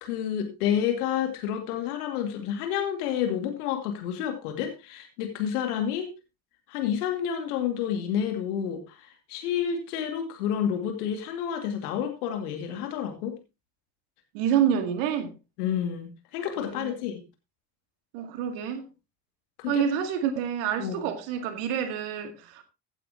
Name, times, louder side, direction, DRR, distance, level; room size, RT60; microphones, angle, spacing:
voice 1, 0.0-6.1 6.7-13.4 15.6-17.2 19.6-19.8 20.8-21.1, left 9 dB, 70° left, 2.4 m, -29 dB
voice 2, 14.3-15.3 16.6-17.0 18.1-18.9 19.7-22.6, right 8 dB, 65° right, 2.0 m, -28 dB
15.5 x 8.4 x 2.9 m
figure-of-eight pair, 50°, 48 cm